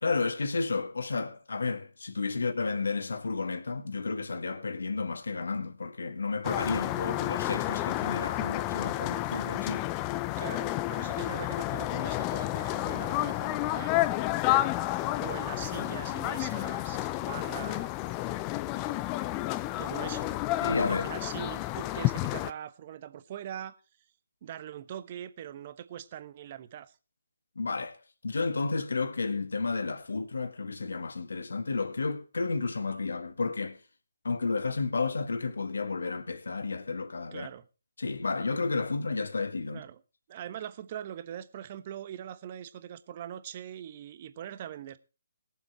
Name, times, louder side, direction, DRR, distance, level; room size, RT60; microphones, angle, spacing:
voice 1, 0.0-9.9 20.6-21.1 27.6-28.0 28.2-33.8 34.2-37.5 38.0-39.8, left 4 dB, 70° left, 1.8 m, -32 dB
sound 1, 6.4-22.5, left 16 dB, 20° left, 0.5 m, -31 dB
voice 2, 10.4-14.0 15.2-17.9 19.8-20.3 20.8-23.8 24.4-26.9 37.3-37.7 39.7-40.0 40.3-45.0, right 10 dB, 35° right, 1.1 m, -42 dB
20.0 x 7.4 x 4.4 m
figure-of-eight pair, 145°, 0 cm